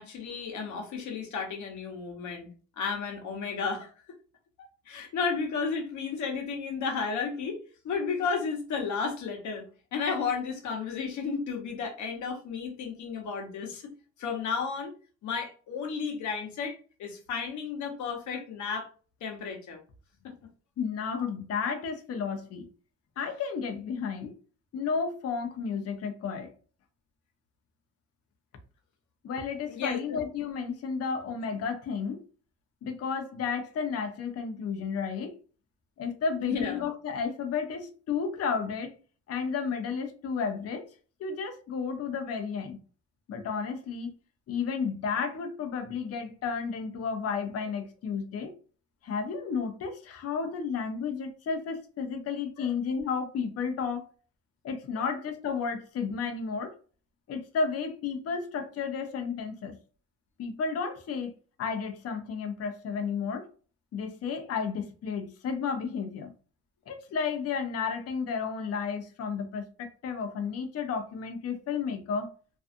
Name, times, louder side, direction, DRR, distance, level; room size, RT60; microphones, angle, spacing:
voice 1, 0.0-2.5 2.8-3.9 4.6-7.6 7.8-9.6 9.9-13.8 14.2-14.9 15.2-18.9 19.2-19.8 20.2-20.3 29.7-30.2 36.4-36.9 52.6-52.7 54.9-55.1, left 5 dB, 75° left, 1.0 m, -33 dB
voice 2, 20.8-22.7 23.2-24.3 24.7-26.5 29.2-32.2 32.8-35.4 36.0-38.9 39.3-40.9 41.2-42.8 43.3-44.1 44.5-48.5 49.0-54.1 54.6-56.8 57.3-59.8 60.4-61.3 61.6-63.5 63.9-66.3 66.9-72.3, left 5 dB, 55° left, 0.6 m, -32 dB
2.6 x 2.3 x 2.5 m
cardioid pair, 90°, 30 cm